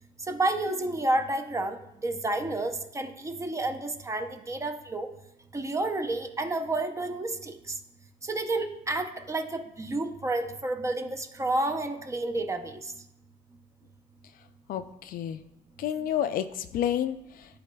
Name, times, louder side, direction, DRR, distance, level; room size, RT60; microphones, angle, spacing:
voice 1, 0.3-1.8 2.0-5.1 5.5-7.7 8.2-12.8, right 2 dB, 15° right, 6 dB, 0.6 m, -30 dB
voice 2, 14.7-15.4 15.8-17.5, left 10 dB, 60° left, 11 dB, 0.4 m, -30 dB
11.5 x 4.0 x 2.3 m, 0.83 s
cardioid pair, 110°, 17 cm